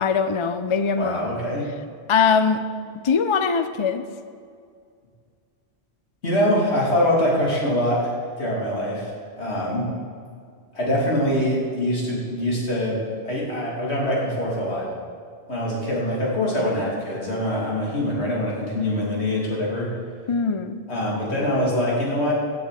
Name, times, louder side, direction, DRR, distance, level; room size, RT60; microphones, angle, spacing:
voice 1, 0.0-1.2 2.1-2.6 3.0-4.0 20.3-20.8, left 6 dB, 40° left, 10 dB, 0.5 m, -21 dB
voice 2, 0.9-1.7 6.2-9.1 9.4-9.9 10.7-14.9 15.5-19.9 20.9-22.3, left 1 dB, 75° left, -4 dB, 3.1 m, -24 dB
15.5 x 7.2 x 4.9 m, 2.2 s
omnidirectional pair, 1.1 m